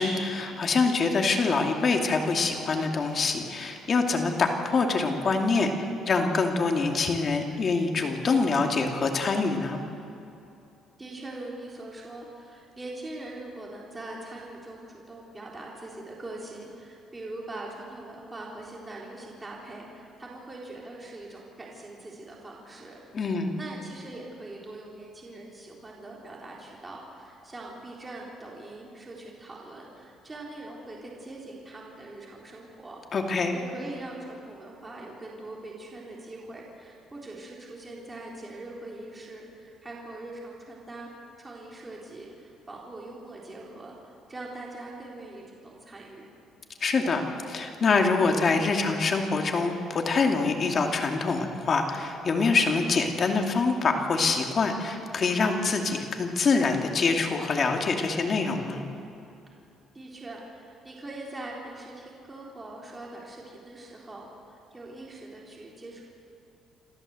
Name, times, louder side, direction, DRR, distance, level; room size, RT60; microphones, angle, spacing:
voice 1, 0.0-5.7 6.1-9.8 23.1-23.5 33.1-33.5 46.8-47.2 47.5-58.8, left 4 dB, 40° left, 3 dB, 2.5 m, -25 dB
voice 2, 11.0-33.0 33.5-41.1 41.4-46.3 59.9-66.0, right 2 dB, 20° right, -3 dB, 3.8 m, -42 dB
28.0 x 13.5 x 7.9 m, 2.8 s
cardioid pair, 115°, 0 cm